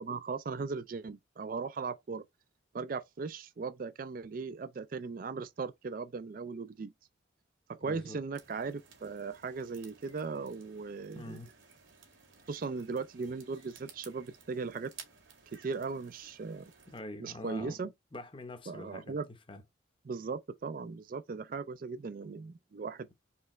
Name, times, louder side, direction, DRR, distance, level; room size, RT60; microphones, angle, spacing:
voice 1, 0.0-2.2 2.7-6.9 7.7-11.4 12.5-14.9 15.6-16.7 17.2-17.9 18.7-19.3 20.0-23.1, right 4 dB, 45° right, 0.4 m, -38 dB
voice 2, 7.8-8.2 11.1-11.5 16.9-19.2 19.5-19.6, left 2 dB, 25° left, 0.8 m, -45 dB
sound 1, 8.3-17.0, right 6 dB, 75° right, 1.9 m, -56 dB
4.4 x 3.4 x 3.1 m
head